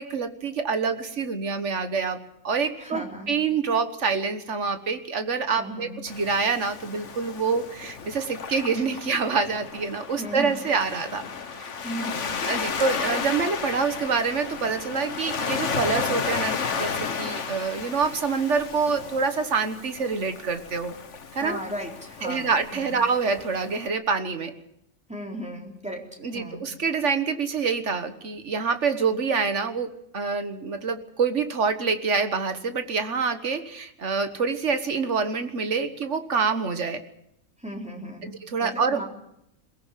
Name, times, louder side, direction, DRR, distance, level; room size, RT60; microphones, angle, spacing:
voice 1, 0.0-2.2 2.4-11.2 11.5-11.7 12.5-20.9 21.3-21.6 22.2-24.5 26.2-37.0 38.2-39.0, right 5 dB, 60° right, 9 dB, 1.7 m, -26 dB
voice 2, 2.8-3.4 5.6-6.0 10.2-10.6 11.8-12.4 21.3-23.0 25.1-26.7 37.6-39.0, equal, 5° right, 0 dB, 3.8 m, -36 dB
Waves surf, 6.1-23.9, left 6 dB, 60° left, 1.5 m, -33 dB
22.0 x 18.0 x 7.6 m, 0.82 s
omnidirectional pair, 1.4 m